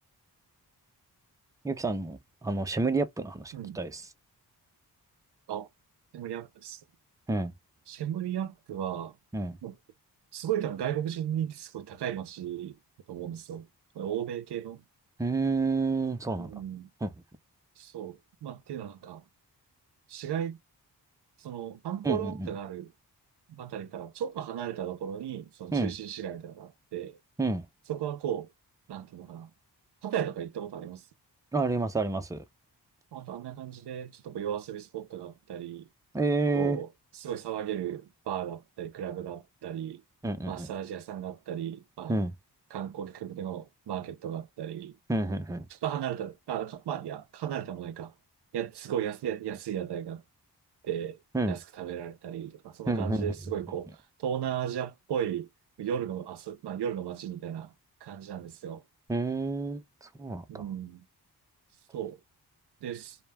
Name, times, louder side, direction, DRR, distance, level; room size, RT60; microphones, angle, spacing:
voice 1, 1.6-4.1 7.3-7.5 9.3-9.6 15.2-16.5 17.0-17.1 22.0-22.5 25.7-25.9 27.4-27.7 31.5-32.4 36.1-36.8 40.2-40.7 42.1-42.3 45.1-45.7 51.3-51.6 52.9-53.3 59.1-60.6, right 3 dB, 10° right, 0.6 m, -29 dB
voice 2, 6.1-6.8 7.9-9.2 9.6-9.8 10.3-12.8 13.1-13.7 13.9-14.8 16.4-16.9 17.8-19.2 20.1-20.6 21.4-22.9 23.5-27.2 27.9-28.5 28.9-29.5 30.0-31.0 33.1-35.9 36.5-36.9 37.1-40.0 40.5-42.2 42.7-45.0 45.8-48.1 48.5-50.2 50.8-51.2 51.5-55.5 55.8-57.7 58.0-58.8 60.5-61.0 61.9-62.2 62.8-63.2, right 9 dB, 75° right, 0.6 m, -35 dB
2.2 x 2.1 x 3.3 m
cardioid pair, 65°, 40 cm